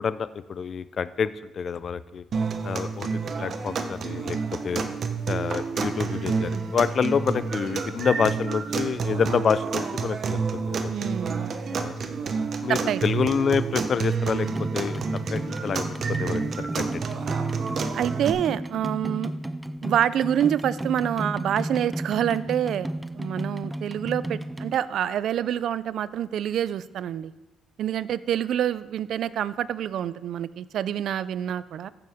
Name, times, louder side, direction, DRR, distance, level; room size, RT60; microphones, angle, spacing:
voice 1, 0.0-2.2 2.6-4.4 4.6-4.8 5.3-11.1 11.7-11.9 12.6-15.0 15.3-17.0, left 6 dB, 50° left, 15 dB, 0.5 m, -27 dB
sound 1, 2.3-18.3, right 5 dB, 55° right, 0.9 m, -29 dB
voice 2, 10.9-11.6 12.7-13.0 17.9-19.3 19.8-22.9 23.2-27.3 27.8-31.9, right 10 dB, 70° right, 17 dB, 0.4 m, -27 dB
sound 2, 14.4-24.8, right 1 dB, 10° right, 0.5 m, -34 dB
14.5 x 6.8 x 3.5 m, 1.1 s
cardioid pair, 90°, 0 cm